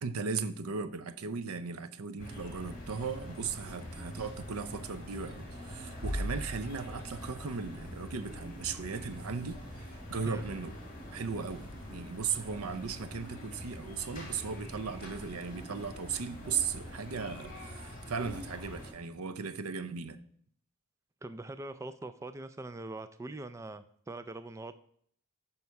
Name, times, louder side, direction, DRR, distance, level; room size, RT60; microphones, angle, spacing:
voice 1, 0.0-10.7 11.1-20.2, right 5 dB, 90° right, 0.6 m, -37 dB
sound 1, 2.2-18.9, equal, 40° left, 2.8 m, -43 dB
voice 2, 21.2-24.7, right 2 dB, 15° right, 0.3 m, -42 dB
9.4 x 5.6 x 4.7 m
head